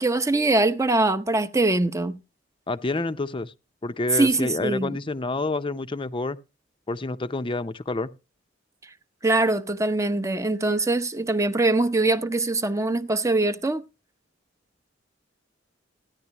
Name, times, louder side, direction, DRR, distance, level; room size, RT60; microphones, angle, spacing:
voice 1, 0.0-2.2 4.1-5.0 9.2-13.8, right 2 dB, 15° right, 0.7 m, -23 dB
voice 2, 2.7-3.5 3.8-6.4 6.9-8.1, left 2 dB, 25° left, 0.6 m, -28 dB
15.0 x 10.5 x 2.9 m
head